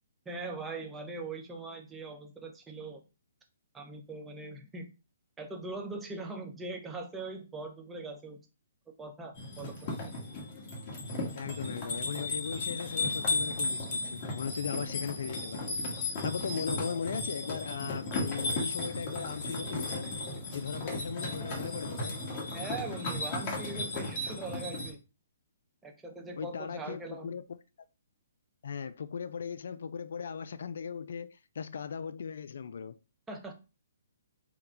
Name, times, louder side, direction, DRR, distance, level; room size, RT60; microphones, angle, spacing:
voice 1, 0.3-3.0 3.7-4.9 5.4-8.4 9.0-9.9 22.5-25.0 25.8-27.4 33.3-33.5, right 3 dB, 10° right, 0.7 m, -41 dB
sound 1, 9.3-24.9, left 2 dB, 35° left, 1.2 m, -35 dB
voice 2, 11.3-15.8 16.2-20.1 20.5-22.2 26.3-27.4 28.6-33.0, left 6 dB, 65° left, 0.4 m, -38 dB
3.8 x 2.2 x 4.3 m
hypercardioid pair, 145°, 0 cm